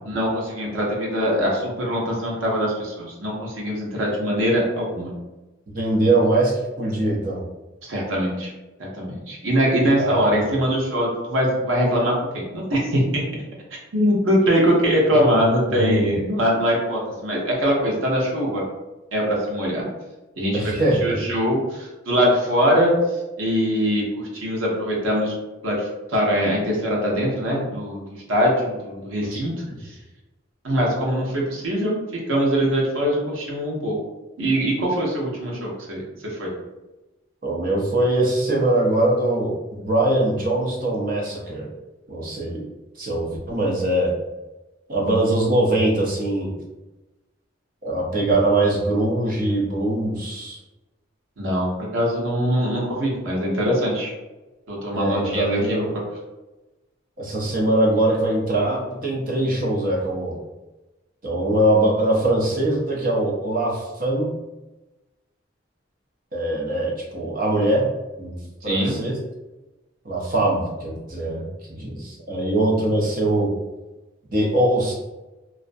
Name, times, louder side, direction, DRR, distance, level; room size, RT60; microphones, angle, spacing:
voice 1, 0.0-5.1 7.8-8.5 8.8-13.2 13.9-18.6 19.1-19.9 20.4-20.7 21.0-22.9 23.4-25.3 25.6-28.0 28.3-29.5 29.8-30.0 30.6-32.0 32.3-34.0 34.4-36.0 36.3-36.5 51.4-54.1 54.7-55.9 68.6-68.9, equal, 85° right, -2 dB, 0.7 m, -22 dB
voice 2, 5.7-7.4 10.0-10.3 15.3-15.4 15.7-16.1 20.5-21.2 29.3-29.4 29.7-29.8 37.4-41.7 42.1-42.7 43.0-44.1 44.9-46.5 47.8-50.6 54.9-55.8 57.2-60.4 61.2-64.3 66.3-67.9 68.2-69.1 70.0-73.5 74.3-74.9, right 1 dB, 45° right, -2 dB, 0.6 m, -22 dB
2.4 x 2.1 x 2.5 m, 1.1 s
head